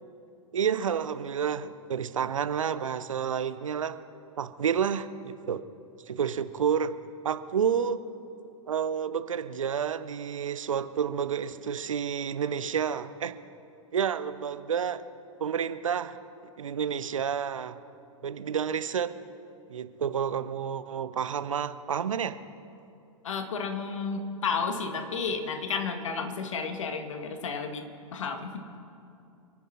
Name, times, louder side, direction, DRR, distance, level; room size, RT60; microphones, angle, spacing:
voice 1, 0.5-4.0 4.4-5.6 6.1-6.9 7.2-8.0 8.7-13.4 13.9-15.0 15.4-16.2 16.6-17.8 18.2-19.1 19.7-22.4, right 7 dB, 70° right, 13 dB, 0.8 m, -30 dB
voice 2, 23.2-28.6, left 5 dB, 65° left, 6 dB, 1.7 m, -32 dB
28.5 x 10.0 x 4.3 m, 2.6 s
figure-of-eight pair, 100°, 17 cm